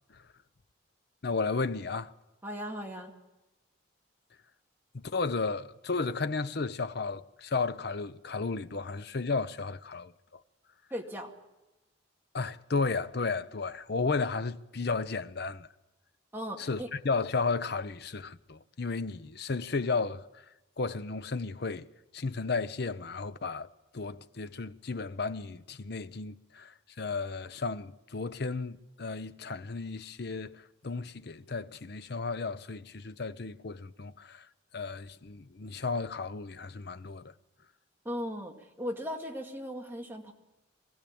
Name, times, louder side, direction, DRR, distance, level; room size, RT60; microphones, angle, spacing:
voice 1, 1.2-2.1 4.9-10.4 12.3-15.7 16.6-20.2 20.8-21.9 22.1-23.7 23.9-34.5 34.7-37.3, left 4 dB, 55° left, 0.7 m, -33 dB
voice 2, 2.4-3.1 10.9-11.3 16.3-16.9 38.0-40.3, equal, 10° right, 2.1 m, -37 dB
23.5 x 16.0 x 8.6 m
head